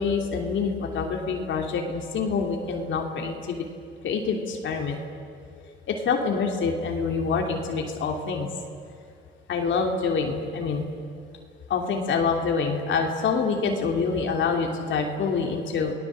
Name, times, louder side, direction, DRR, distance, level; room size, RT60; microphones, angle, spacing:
voice 1, 0.0-3.6 4.0-5.0 5.9-8.5 9.5-10.9 11.7-15.9, left 5 dB, 70° left, 2 dB, 3.0 m, -26 dB
29.5 x 19.0 x 7.7 m, 2.4 s
cardioid pair, 90°, 20 cm